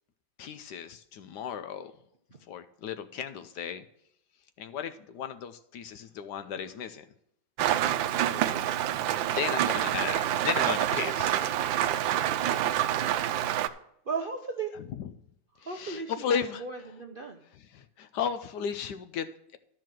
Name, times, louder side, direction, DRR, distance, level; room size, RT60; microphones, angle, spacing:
voice 1, 0.4-1.9 2.5-3.8 4.6-7.1 9.3-11.4 15.0-15.1 15.7-16.6 17.6-19.6, left 7 dB, 70° left, 10 dB, 1.1 m, -35 dB
Rain, 7.6-13.7, right 12 dB, 85° right, 1.3 m, -27 dB
voice 2, 8.2-8.6 9.6-9.8 10.0-10.2 10.9-11.4 12.5-13.1 14.1-14.7 15.6-17.4, right 4 dB, 55° right, 3 dB, 0.5 m, -38 dB
12.0 x 4.7 x 7.5 m, 0.75 s
omnidirectional pair, 2.1 m